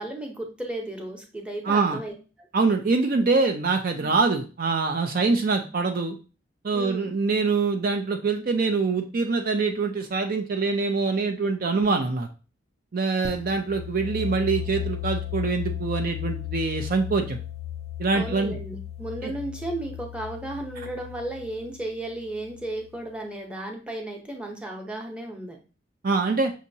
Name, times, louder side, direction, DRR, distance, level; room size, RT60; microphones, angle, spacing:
voice 1, 0.0-2.5 4.0-4.1 6.7-7.1 18.1-25.6, right 1 dB, 5° right, 1 dB, 0.8 m, -34 dB
voice 2, 1.7-2.0 2.5-6.2 6.6-12.3 12.9-17.4 18.0-18.6 19.2-19.3 26.0-26.5, right 4 dB, 50° right, 5 dB, 0.4 m, -24 dB
sound 1, 13.2-22.8, left 11 dB, 35° left, 0.4 m, -35 dB
6.1 x 2.7 x 2.7 m, 0.33 s
head